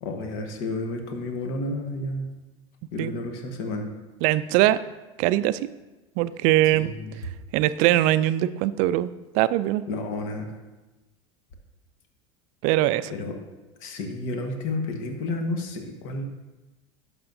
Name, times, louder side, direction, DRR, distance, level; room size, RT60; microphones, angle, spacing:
voice 1, 0.0-2.3 2.9-3.9 6.7-7.1 9.9-10.5 13.1-13.4 13.8-16.2, left 2 dB, 60° left, 4 dB, 1.3 m, -31 dB
voice 2, 4.2-4.8 5.2-5.7 6.2-6.9 7.5-9.8 12.6-13.1, right 14 dB, 55° right, 15 dB, 0.4 m, -22 dB
11.0 x 6.2 x 2.6 m, 1.1 s
hypercardioid pair, 90°, 15 cm